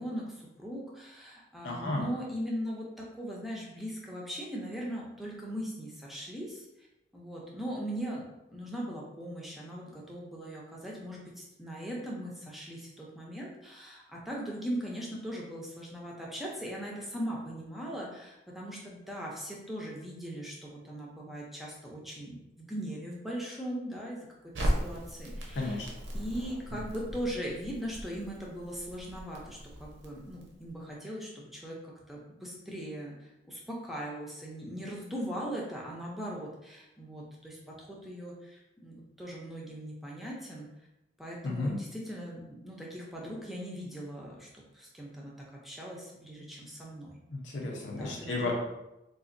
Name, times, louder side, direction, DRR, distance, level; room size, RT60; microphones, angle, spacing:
voice 1, 0.0-6.7 7.1-24.2 24.6-25.8 26.1-40.7 41.2-44.5 44.7-45.3 45.6-47.1 47.9-48.5, equal, ahead, -4 dB, 0.5 m, -39 dB
voice 2, 1.6-2.0 25.5-25.9 41.4-41.8 47.3-48.5, left 2 dB, 75° left, -2 dB, 0.7 m, -33 dB
Crackle, 24.5-30.7, equal, 85° right, 0.7 m, -37 dB
3.9 x 2.5 x 2.6 m, 0.93 s
head